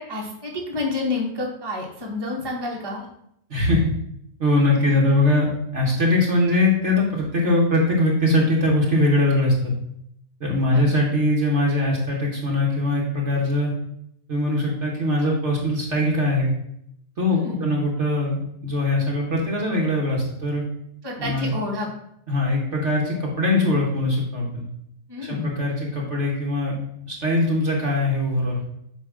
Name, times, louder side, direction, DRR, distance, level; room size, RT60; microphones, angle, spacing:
voice 1, 0.0-3.1 10.6-10.9 17.3-17.8 21.0-21.9 25.1-25.6, left 2 dB, 15° right, -2 dB, 1.4 m, -29 dB
voice 2, 3.5-3.9 4.4-9.7 10.4-13.7 14.3-16.5 17.2-20.6 21.2-21.5 22.3-24.6 25.2-26.7 27.1-28.6, left 1 dB, 45° right, -2 dB, 1.5 m, -21 dB
8.2 x 3.1 x 6.1 m, 0.75 s
omnidirectional pair, 1.8 m